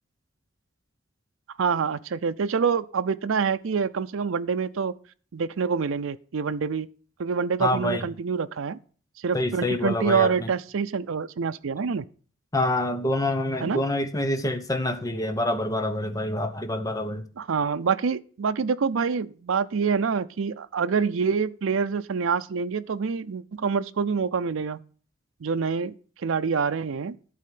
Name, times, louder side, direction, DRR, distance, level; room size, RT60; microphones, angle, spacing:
voice 1, 1.6-4.9 5.3-6.9 7.2-8.8 9.2-12.0 13.6-13.8 17.4-24.8 25.4-25.9 26.2-27.2, right 5 dB, 85° right, 0.5 m, -26 dB
voice 2, 7.6-8.1 9.3-10.5 12.5-17.3, left 1 dB, 15° left, 0.8 m, -26 dB
11.0 x 4.3 x 7.5 m
head